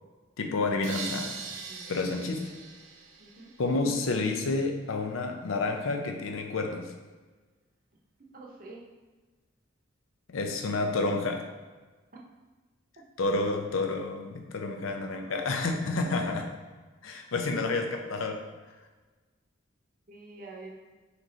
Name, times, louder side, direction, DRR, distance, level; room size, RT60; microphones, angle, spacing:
voice 1, 0.4-1.3 1.9-2.5 3.6-6.9 10.3-11.4 13.2-16.5 17.0-18.4, left 3 dB, 90° left, 4 dB, 0.5 m, -29 dB
sound 1, 0.8-3.8, right 5 dB, 75° right, 0.5 m, -41 dB
voice 2, 1.7-2.0 3.2-3.5 8.2-8.8 13.0-13.1 15.1-15.4 20.1-20.8, right 3 dB, 45° right, -2 dB, 0.7 m, -47 dB
4.3 x 3.0 x 3.9 m, 1.3 s
head